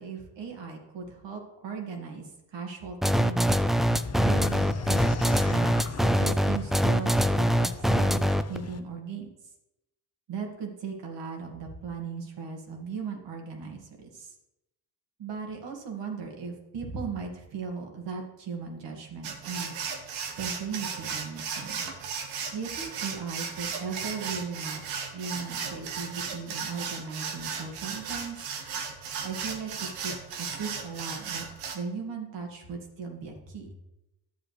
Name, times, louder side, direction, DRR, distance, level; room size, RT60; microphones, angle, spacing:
voice 1, 0.0-3.5 4.2-8.2 8.5-9.3 10.3-14.3 15.2-19.7 20.2-21.9 22.5-28.5 29.2-31.4 31.7-33.7, right 5 dB, 60° right, 2 dB, 2.2 m, -37 dB
sound 1, 3.0-8.6, equal, ahead, 0.3 m, -23 dB
sound 2, 3.7-8.8, left 5 dB, 30° left, 0.8 m, -38 dB
sound 3, 19.2-31.8, right 6 dB, 85° right, 1.3 m, -36 dB
11.5 x 7.4 x 3.3 m, 0.92 s
hypercardioid pair, 55°, 47 cm